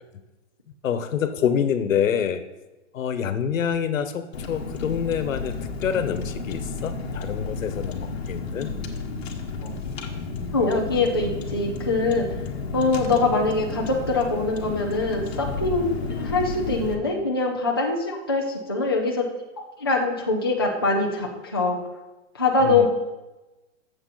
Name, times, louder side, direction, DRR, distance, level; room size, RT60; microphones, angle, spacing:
voice 1, 0.8-2.4 2.9-8.7 22.6-22.9, left 8 dB, 85° left, 11 dB, 1.1 m, -26 dB
Car, 4.3-16.9, left 4 dB, 55° left, 1.4 m, -32 dB
voice 2, 10.5-12.3 12.7-19.3 19.6-21.8 22.3-22.9, left 3 dB, 20° left, -1 dB, 0.4 m, -23 dB
15.0 x 7.0 x 4.0 m, 1.1 s
hypercardioid pair, 180°, 38 cm